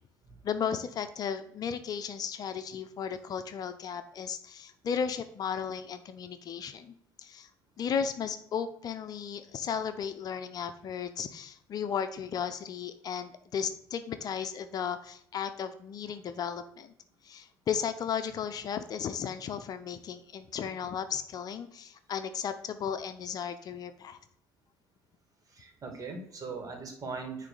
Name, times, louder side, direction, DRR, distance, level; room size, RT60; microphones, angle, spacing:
voice 1, 0.4-7.5 7.8-16.9 17.2-24.2, left 7 dB, 45° left, 10 dB, 0.7 m, -35 dB
voice 2, 25.5-27.5, right 4 dB, 40° right, 4 dB, 2.4 m, -40 dB
9.7 x 3.3 x 6.8 m, 0.68 s
figure-of-eight pair, 55°, 9 cm